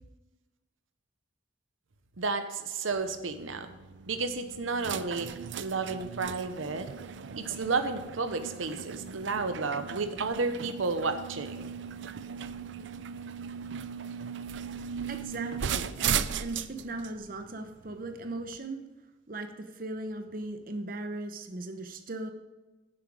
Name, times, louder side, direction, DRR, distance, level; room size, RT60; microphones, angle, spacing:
voice 1, 2.2-3.7 4.1-5.3 5.6-6.9 7.4-11.7, right 4 dB, 85° right, 8 dB, 0.9 m, -32 dB
sound 1, 2.9-18.6, right 7 dB, 70° right, 0.4 m, -37 dB
voice 2, 14.8-18.8 19.3-22.3, right 2 dB, 45° right, 6 dB, 0.9 m, -38 dB
9.6 x 7.8 x 4.8 m, 1.1 s
head